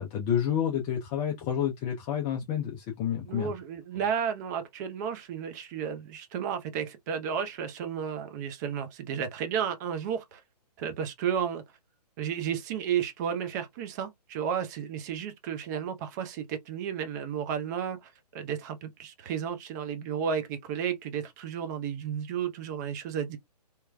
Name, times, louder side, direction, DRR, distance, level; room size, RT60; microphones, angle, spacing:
voice 1, 0.0-3.5, left 9 dB, 15° left, 0.4 m, -29 dB
voice 2, 3.3-10.4 10.8-11.6 12.2-23.4, right 8 dB, 25° right, 0.6 m, -33 dB
3.1 x 2.9 x 2.2 m
figure-of-eight pair, 130°, 21 cm